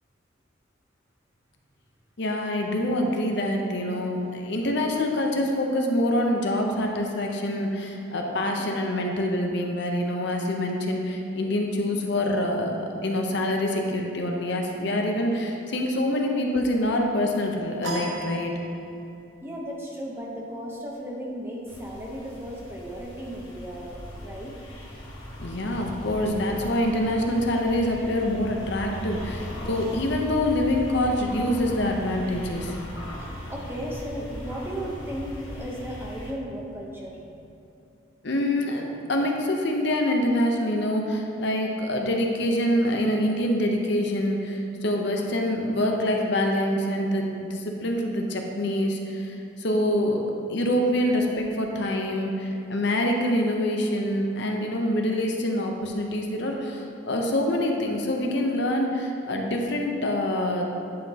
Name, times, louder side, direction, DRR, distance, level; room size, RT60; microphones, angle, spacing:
voice 1, 2.2-18.6 25.4-32.8 38.2-50.2 50.5-60.7, left 1 dB, 55° left, 1 dB, 0.7 m, -25 dB
sound 1, 17.8-19.2, right 2 dB, 75° right, 1.0 m, -35 dB
voice 2, 19.4-24.5 33.2-37.2, equal, 10° right, -3 dB, 0.7 m, -35 dB
sound 2, 21.7-36.3, left 1 dB, 75° left, 1.1 m, -38 dB
9.5 x 5.8 x 2.8 m, 2.7 s
head